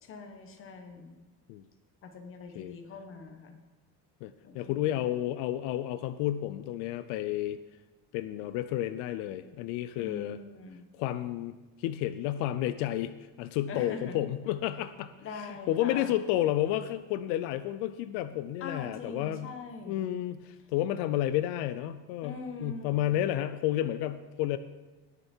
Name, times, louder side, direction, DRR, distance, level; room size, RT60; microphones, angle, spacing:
voice 1, 0.0-1.2 2.0-3.6 4.4-4.8 9.9-10.9 13.7-14.2 15.2-16.1 18.6-20.1 22.2-23.0, left 4 dB, 30° left, 5 dB, 1.3 m, -43 dB
voice 2, 4.2-7.6 8.1-10.4 10.9-13.1 13.4-19.5 19.9-24.6, left 13 dB, 85° left, 13 dB, 0.6 m, -31 dB
19.0 x 6.9 x 4.5 m, 1.2 s
cardioid pair, 170°, 40 cm